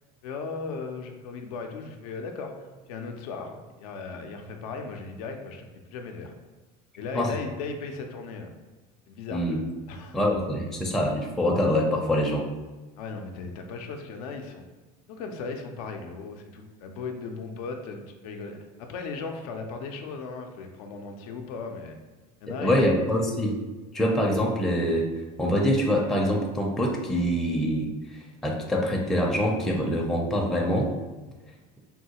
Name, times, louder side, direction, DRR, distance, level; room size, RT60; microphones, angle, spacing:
voice 1, 0.2-2.5 2.9-6.3 7.0-8.5 9.1-9.4 9.9-10.2 13.0-14.6 15.1-22.0 22.4-23.0, left 4 dB, 85° left, 4 dB, 0.5 m, -37 dB
voice 2, 10.1-12.5 22.5-23.6 23.9-25.1 25.4-30.9, equal, ahead, -1 dB, 0.4 m, -25 dB
3.6 x 2.3 x 2.8 m, 1.2 s
supercardioid pair, 105°, 18 cm